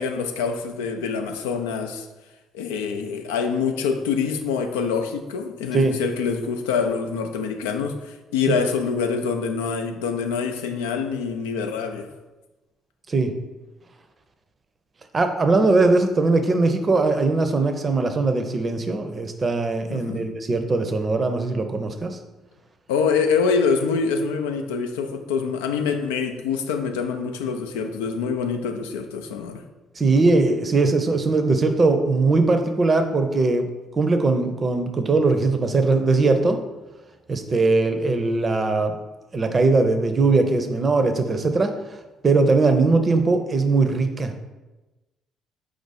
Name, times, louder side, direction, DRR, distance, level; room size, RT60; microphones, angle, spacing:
voice 1, 0.0-2.1 2.5-12.1 19.9-20.3 22.9-29.6, left 5 dB, 85° left, 0.3 m, -25 dB
voice 2, 15.1-22.2 30.0-33.7 33.9-36.6 37.3-39.0 39.3-41.7 42.2-44.3, right 3 dB, 40° right, 0.5 m, -20 dB
4.6 x 2.5 x 4.0 m
hypercardioid pair, 50°, 0 cm